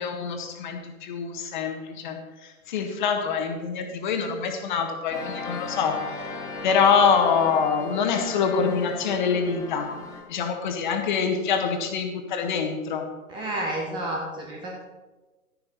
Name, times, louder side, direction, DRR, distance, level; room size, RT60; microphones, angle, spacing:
voice 1, 0.0-2.2 2.4-6.0 6.6-9.9 10.3-13.0, left 6 dB, 35° left, 5 dB, 1.5 m, -25 dB
sound 1, 5.1-10.2, left 2 dB, 5° left, 1.9 m, -37 dB
voice 2, 13.3-14.9, right 1 dB, 10° right, -1 dB, 0.9 m, -31 dB
12.5 x 10.5 x 4.2 m, 1.2 s
figure-of-eight pair, 125°, 43 cm